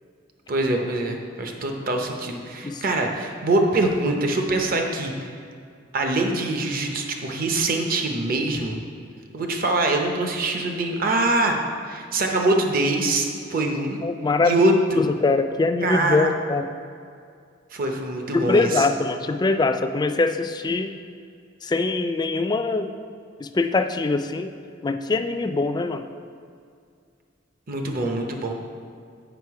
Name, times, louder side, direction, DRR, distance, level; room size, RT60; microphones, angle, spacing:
voice 1, 0.5-5.1 5.9-8.8 9.3-11.6 11.9-14.0 14.4-15.0 15.8-16.3 17.7-18.8 27.7-28.5, right 2 dB, 50° right, 3 dB, 0.8 m, -23 dB
voice 2, 14.0-14.6 15.0-16.7 18.3-21.0 21.6-22.9 23.4-24.5 24.8-26.1, left 3 dB, 20° left, 8 dB, 0.3 m, -23 dB
8.1 x 5.5 x 4.7 m, 2.3 s
head